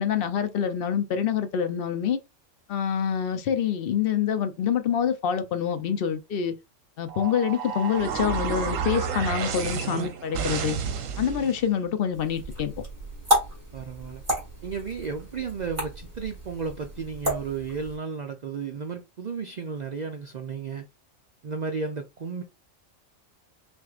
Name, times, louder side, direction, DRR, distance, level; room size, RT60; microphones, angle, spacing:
voice 1, 0.0-2.2 2.7-6.5 7.0-10.8 11.2-12.7, left 8 dB, 55° left, 0.7 m, -26 dB
sound 1, 7.1-11.6, right 6 dB, 85° right, 1.1 m, -30 dB
sound 2, 12.1-18.0, equal, 25° right, 1.8 m, -31 dB
voice 2, 13.7-14.2 14.6-20.9 21.4-22.4, right 5 dB, 60° right, 0.4 m, -33 dB
6.0 x 2.5 x 2.4 m
omnidirectional pair, 1.3 m